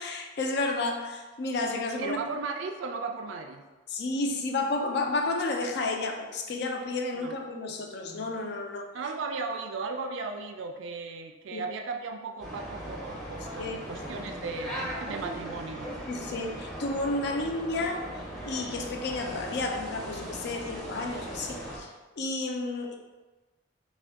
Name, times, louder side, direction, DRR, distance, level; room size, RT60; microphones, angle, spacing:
voice 1, 0.0-2.2 3.9-8.9 11.5-11.6 13.6-13.8 16.1-18.1 18.4-22.9, left 2 dB, 55° left, 3 dB, 0.4 m, -31 dB
voice 2, 2.0-3.6 7.1-7.4 8.9-15.9, right 4 dB, 70° right, 5 dB, 0.3 m, -36 dB
sound 1, 12.4-21.8, equal, ahead, 0.6 m, -39 dB
3.5 x 2.2 x 3.4 m, 1.2 s
head